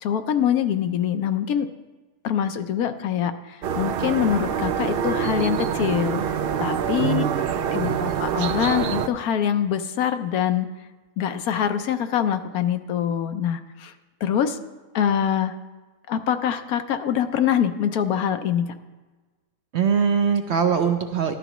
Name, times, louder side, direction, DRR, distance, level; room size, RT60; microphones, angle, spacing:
voice 1, 0.0-1.7 2.2-6.2 6.6-7.2 7.7-10.7 11.2-13.9 14.2-14.6 14.9-15.5 16.1-18.7, left 9 dB, 75° left, 8 dB, 1.2 m, -24 dB
sound 1, 3.6-9.1, right 7 dB, 80° right, 0.5 m, -25 dB
voice 2, 7.0-8.0 19.7-21.4, right 6 dB, 60° right, 6 dB, 0.8 m, -23 dB
13.5 x 12.0 x 3.0 m, 1.3 s
omnidirectional pair, 1.6 m